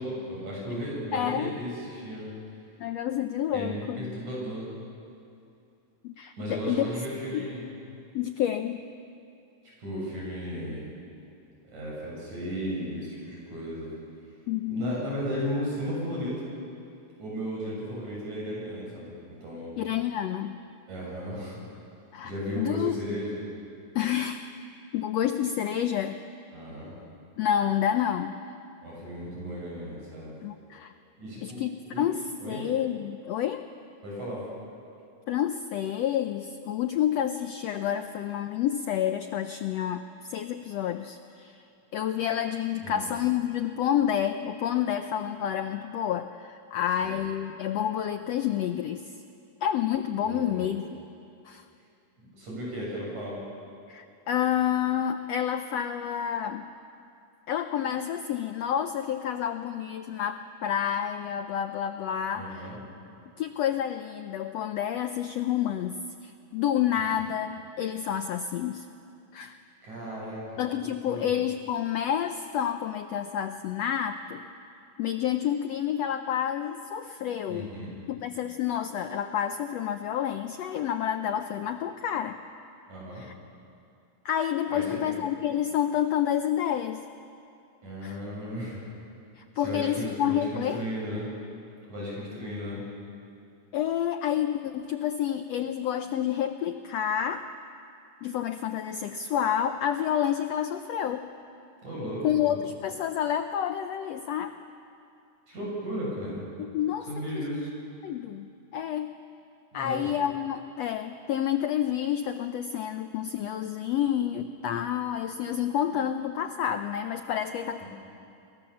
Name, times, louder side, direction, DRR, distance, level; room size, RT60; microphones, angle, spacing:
voice 1, 0.0-2.3 3.5-4.7 6.4-7.7 9.8-10.9 11.7-13.9 14.6-16.5 17.2-19.1 19.4-19.7 20.9-21.6 22.2-23.4 26.5-27.0 28.8-30.3 31.2-31.6 31.9-32.1 32.4-32.7 34.0-34.4 42.8-43.0 47.0-47.2 50.2-50.7 52.3-53.4 62.3-62.8 69.8-70.4 70.8-71.3 77.5-77.9 82.9-83.2 84.7-85.0 87.8-88.8 89.5-91.3 91.9-92.8 101.8-102.5 105.5-106.4 107.1-107.7 109.7-110.0 117.8-117.9, equal, 60° right, -5 dB, 8.8 m, -35 dB
voice 2, 1.1-1.5 2.8-4.0 6.0-6.9 7.3-7.5 8.1-8.8 14.5-14.9 19.8-20.6 22.1-23.0 23.9-24.5 24.9-26.2 27.4-28.3 30.4-30.9 31.4-33.6 35.3-41.6 41.9-49.1 49.6-51.0 51.4-51.6 53.9-56.7 57.5-62.8 63.4-68.9 69.3-69.6 70.6-74.4 75.0-77.7 78.1-82.4 83.2-83.3 84.2-87.1 88.0-88.2 89.4-90.8 93.7-97.5 98.2-101.3 102.2-104.6 106.6-107.1 107.3-107.4 108.0-109.2 109.7-117.8, left 10 dB, 80° left, 8 dB, 1.5 m, -29 dB
29.5 x 22.5 x 7.2 m, 2.6 s
omnidirectional pair, 3.8 m